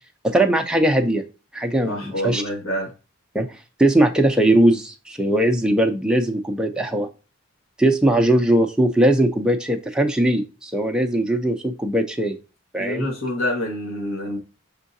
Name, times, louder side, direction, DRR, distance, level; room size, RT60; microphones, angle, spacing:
voice 1, 0.2-1.2 1.5-2.4 3.3-3.5 3.8-7.1 7.8-12.4 12.7-13.0, right 1 dB, 5° right, 0.5 m, -19 dB
voice 2, 1.8-2.9 12.8-14.4, left 1 dB, 80° left, 1.5 m, -27 dB
5.5 x 3.7 x 2.6 m
head